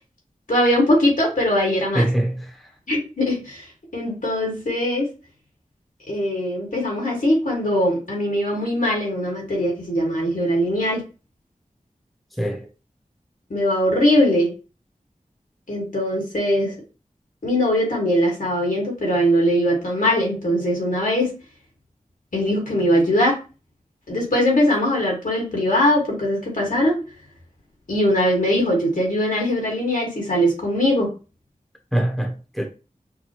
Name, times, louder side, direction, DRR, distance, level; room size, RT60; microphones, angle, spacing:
voice 1, 0.5-2.0 2.9-3.7 3.9-5.1 6.1-11.0 13.5-14.5 15.7-16.7 17.4-21.3 22.3-23.4 24.1-27.0 27.9-31.1, equal, 80° left, 1.9 m, -21 dB
voice 2, 1.9-2.7 12.4-12.7 31.9-32.7, right 1 dB, ahead, 0.8 m, -23 dB
5.8 x 2.2 x 3.0 m
wide cardioid pair, 55°, 14 cm